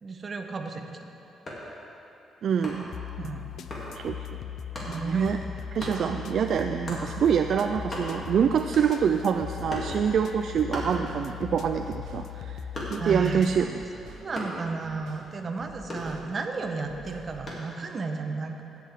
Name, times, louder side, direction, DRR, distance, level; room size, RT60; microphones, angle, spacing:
voice 1, 0.0-0.9 3.2-3.5 4.8-5.5 13.0-13.6 14.1-18.6, right 4 dB, 40° right, 4 dB, 1.0 m, -33 dB
sound 1, 1.4-1.7 2.6-3.0 3.7-3.9 4.7-5.0 5.8-6.0 6.9-7.1 7.5-7.6 7.8-8.3 8.7-9.1 9.7-10.0 10.7-11.5 11.8-13.2 14.3-14.7 15.9-16.6 17.5-17.7, left 1 dB, 35° left, 2.7 m, -37 dB
voice 2, 2.4-2.9 3.9-4.3 4.9-5.4 5.7-12.6 12.9-13.8, right 7 dB, 60° right, 6 dB, 0.3 m, -26 dB
sound 2, 2.9-13.6, left 10 dB, 70° left, 0.4 m, -39 dB
sound 3, 9.6-17.5, right 2 dB, 85° right, 1.5 m, -49 dB
16.5 x 7.5 x 3.6 m, 2.9 s
cardioid pair, 90°, 0 cm